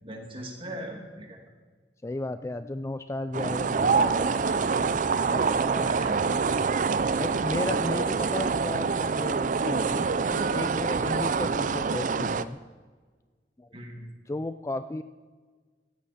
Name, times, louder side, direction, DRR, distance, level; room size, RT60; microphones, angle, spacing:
voice 1, 0.0-1.4 5.6-6.3 13.7-14.1, right 1 dB, 30° right, 1 dB, 2.4 m, -38 dB
voice 2, 2.0-5.9 6.5-6.7 7.2-12.6 13.6-13.7 14.3-15.0, left 2 dB, 15° left, 11 dB, 0.3 m, -35 dB
sound 1, 3.3-12.5, right 5 dB, 45° right, 0.4 m, -26 dB
17.0 x 14.5 x 4.3 m, 1.5 s
head